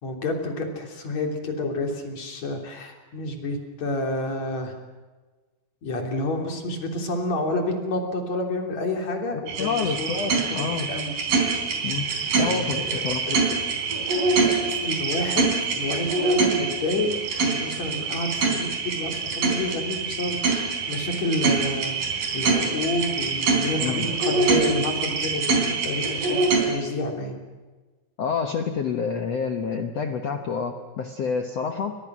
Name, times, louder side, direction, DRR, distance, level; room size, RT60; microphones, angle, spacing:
voice 1, 0.0-4.7 5.8-11.1 12.4-13.6 14.8-17.2 17.4-22.0 22.3-27.4, left 2 dB, 45° left, 2 dB, 4.2 m, -29 dB
sound 1, 9.5-26.6, right 4 dB, 55° right, 5.5 m, -25 dB
voice 2, 9.6-10.9 11.8-12.1 12.4-13.2 23.8-24.1 28.2-32.0, left 6 dB, 85° left, 5 dB, 1.4 m, -28 dB
29.5 x 24.0 x 6.2 m, 1.3 s
omnidirectional pair, 4.9 m